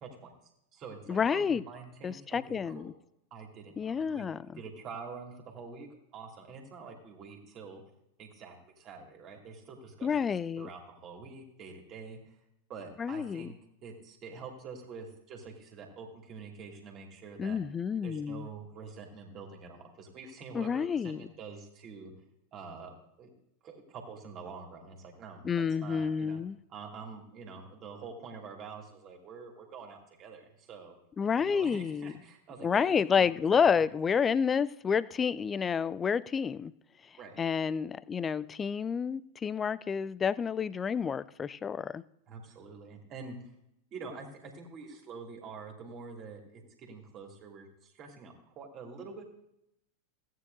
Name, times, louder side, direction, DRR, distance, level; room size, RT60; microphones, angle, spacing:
voice 1, 0.0-0.3 0.7-2.9 3.3-4.3 4.6-5.9 6.1-7.8 8.2-10.3 10.6-12.3 12.7-13.5 13.8-17.6 18.0-21.1 21.4-22.1 22.5-23.3 23.6-26.4 26.7-31.0 31.4-33.6 37.2-37.4 42.3-43.4 43.9-49.2, right 4 dB, 35° right, 2.6 m, -46 dB
voice 2, 1.1-1.6 2.0-2.9 3.8-4.6 10.0-10.7 13.0-13.5 17.4-18.5 20.5-21.3 25.4-26.6 31.2-32.1 32.6-36.7 37.4-42.0, left 6 dB, 20° left, 0.3 m, -29 dB
17.0 x 9.3 x 2.7 m
figure-of-eight pair, 90°, 0 cm